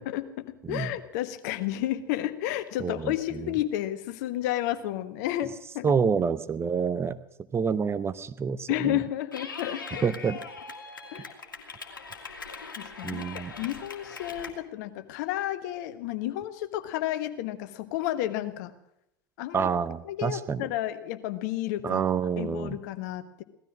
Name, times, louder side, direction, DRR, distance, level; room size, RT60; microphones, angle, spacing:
voice 1, 0.0-5.9 8.7-10.1 11.1-11.3 12.8-18.7 19.4-19.7 20.0-22.0 22.4-23.4, left 13 dB, 60° left, 11 dB, 1.3 m, -31 dB
voice 2, 2.8-3.1 5.8-7.2 7.5-9.0 10.0-10.4 13.0-13.5 19.5-20.6 21.8-22.8, right 6 dB, 25° right, 13 dB, 0.7 m, -27 dB
Clapping / Cheering, 9.3-14.5, left 4 dB, 85° left, 2.0 m, -41 dB
17.5 x 13.0 x 6.2 m, 0.79 s
hypercardioid pair, 85°, 11 cm